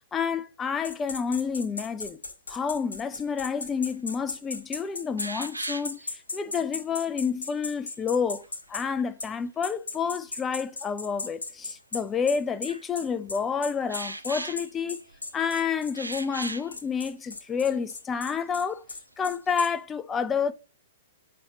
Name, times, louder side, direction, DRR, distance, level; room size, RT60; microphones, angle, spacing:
voice 1, 0.1-2.2 2.5-6.0 6.3-8.4 8.7-15.0 15.3-18.8 19.2-20.5, left 6 dB, 15° left, 0.5 m, -29 dB
sound 1, 0.8-8.9 9.2-9.3 9.6-19.7, left 3 dB, 75° left, 1.4 m, -37 dB
sound 2, 3.8-3.9 4.4-4.5 5.2-6.1 8.3-9.0 10.3-10.4 11.3-11.4 12.5-12.9 13.9-15.3 15.9-16.8 17.4-17.5 17.8-17.9 18.3-18.8 19.1-19.8, right 2 dB, 85° right, 0.6 m, -38 dB
7.4 x 5.6 x 2.9 m
figure-of-eight pair, 110°, 0 cm